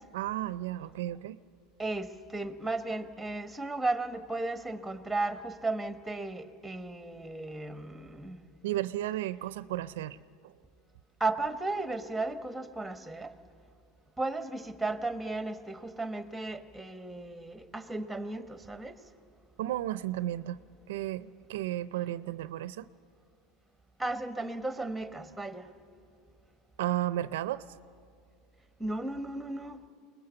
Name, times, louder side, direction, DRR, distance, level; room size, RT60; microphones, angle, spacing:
voice 1, 0.1-1.4 8.6-10.2 10.4-10.5 19.6-20.6 20.9-22.9 26.8-27.6, right 14 dB, 85° right, 16 dB, 0.4 m, -33 dB
voice 2, 1.8-8.4 11.2-13.3 14.2-19.0 24.0-25.7 28.8-29.8, right 2 dB, 5° right, 10 dB, 1.1 m, -35 dB
23.0 x 20.0 x 6.9 m, 2.5 s
supercardioid pair, 110°, 0 cm